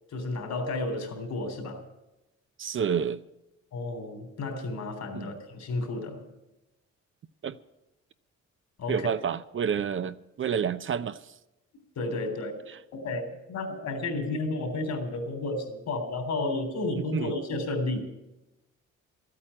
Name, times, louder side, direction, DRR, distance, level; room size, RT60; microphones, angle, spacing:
voice 1, 0.1-1.8 3.7-6.3 8.8-9.1 12.0-12.5 12.9-18.0, left 2 dB, 65° left, 3.5 m, -32 dB
voice 2, 2.6-3.2 5.1-5.3 7.4-7.6 8.9-11.3 17.0-17.3, right 7 dB, 40° right, 0.6 m, -29 dB
13.0 x 8.8 x 9.8 m
cardioid pair, 90°, 30 cm